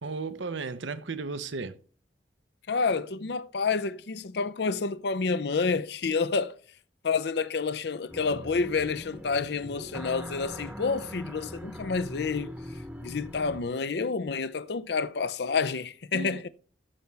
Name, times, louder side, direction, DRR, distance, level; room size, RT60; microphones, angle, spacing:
voice 1, 0.0-1.8 16.1-16.5, right 4 dB, 80° right, 0.8 m, -35 dB
voice 2, 2.7-6.6 7.0-12.5 13.0-16.5, left 4 dB, 60° left, 0.5 m, -29 dB
sound 1, 8.1-13.6, equal, 10° right, 0.9 m, -41 dB
14.0 x 6.8 x 3.3 m
head